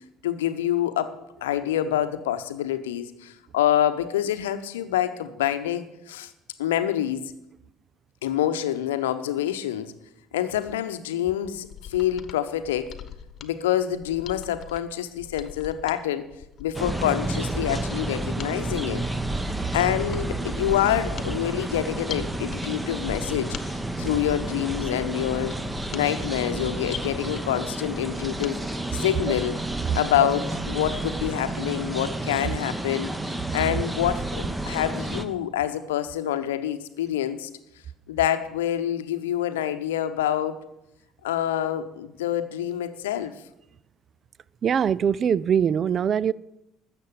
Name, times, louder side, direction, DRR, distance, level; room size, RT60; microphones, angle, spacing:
voice 1, 0.2-1.2 1.4-6.3 6.6-7.2 8.2-9.9 10.3-12.9 13.4-16.3 16.6-19.0 19.7-23.6 24.0-25.5 25.9-28.6 28.9-29.6 29.9-37.5 38.1-40.6 41.2-43.3, left 11 dB, 75° left, 0.8 m, -26 dB
Mechanisms, 11.5-28.6 28.9-29.0, left 9 dB, 45° left, 1.1 m, -42 dB
sound 1, 16.7-35.2, right 2 dB, 10° right, 1.2 m, -31 dB
voice 2, 44.6-46.3, right 8 dB, 40° right, 0.4 m, -22 dB
13.0 x 7.5 x 8.6 m
figure-of-eight pair, 55°, 0 cm